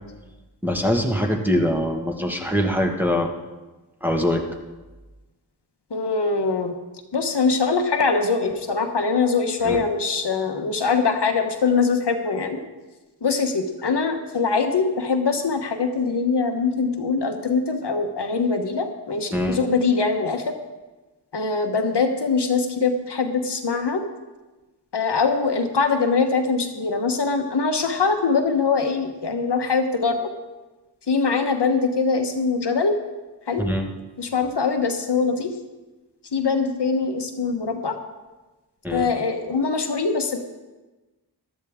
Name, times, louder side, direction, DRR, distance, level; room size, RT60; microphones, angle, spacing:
voice 1, 0.6-3.3 4.0-4.4 9.6-9.8 19.3-19.6 33.6-33.9 38.8-39.1, equal, 5° right, 1 dB, 1.5 m, -23 dB
voice 2, 5.9-6.7 7.1-12.6 13.2-20.5 21.3-24.0 24.9-30.3 31.1-32.9 33.5-33.6 34.2-35.5 36.3-38.0 38.9-40.4, left 4 dB, 65° left, 5 dB, 1.2 m, -22 dB
14.0 x 12.0 x 3.6 m, 1.2 s
wide cardioid pair, 55°, 44 cm